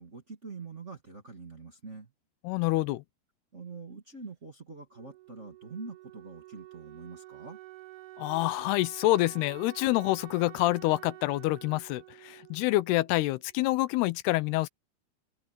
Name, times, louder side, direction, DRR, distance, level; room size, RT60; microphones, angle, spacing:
voice 1, 0.0-2.1 3.5-7.6, right 4 dB, 25° right, 1.9 m, -45 dB
voice 2, 2.4-3.0 8.2-14.7, left 18 dB, 90° left, 2.8 m, -27 dB
Wind instrument woodwind instrument, 4.9-13.6, right 16 dB, 90° right, 3.2 m, -49 dB
open air
omnidirectional pair, 4.5 m